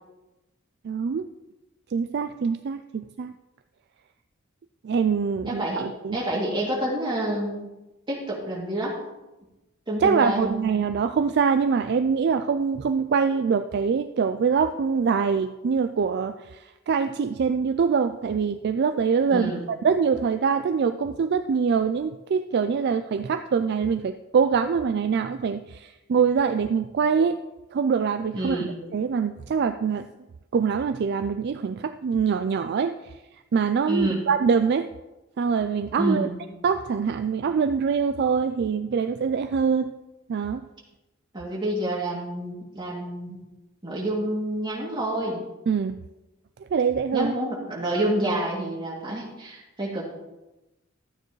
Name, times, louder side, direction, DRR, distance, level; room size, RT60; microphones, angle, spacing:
voice 1, 0.8-1.3 1.9-3.3 4.8-6.2 10.0-27.4 27.7-28.6 28.9-30.0 30.5-33.1 33.5-34.9 35.4-36.3 36.6-39.9 40.3-40.6 45.7-46.0 46.7-47.3, right 6 dB, 50° right, 9 dB, 0.3 m, -24 dB
voice 2, 5.4-5.8 6.1-7.7 8.1-9.0 9.9-10.6 19.3-19.7 28.3-28.7 33.9-34.2 36.0-36.4 41.3-43.4 43.8-45.4 47.1-50.1, right 1 dB, 25° right, -4 dB, 2.6 m, -28 dB
13.0 x 8.9 x 3.1 m, 1.0 s
head